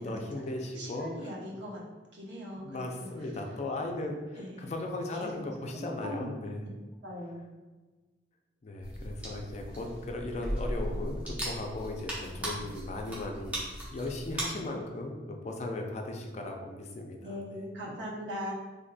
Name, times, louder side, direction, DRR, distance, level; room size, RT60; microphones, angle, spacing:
voice 1, 0.0-1.1 2.6-6.6 8.6-17.3, left 2 dB, 40° left, 2 dB, 0.4 m, -37 dB
voice 2, 0.7-1.8 2.1-3.6 4.3-4.7 5.1-5.3 5.7-6.3 7.0-7.4 12.2-12.6 17.2-18.5, equal, 75° right, -3 dB, 0.8 m, -41 dB
sound 1, 8.8-14.4, equal, 10° right, 0.7 m, -37 dB
3.9 x 2.7 x 2.2 m, 1.3 s
head